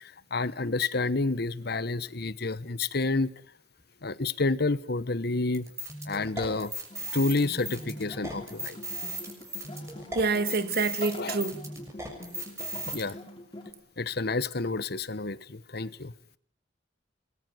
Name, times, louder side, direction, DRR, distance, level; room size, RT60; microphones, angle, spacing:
voice 1, 0.0-3.3 4.0-5.7 6.1-6.7 7.1-8.8 11.2-11.3 12.9-13.2 14.0-16.1, left 3 dB, 60° left, 1.1 m, -29 dB
sound 1, 5.5-13.0, right 1 dB, 15° right, 6.7 m, -37 dB
sound 2, 6.9-13.7, left 1 dB, 25° left, 5.2 m, -44 dB
voice 2, 10.1-11.6, right 3 dB, 55° right, 1.9 m, -27 dB
26.0 x 21.0 x 9.5 m
head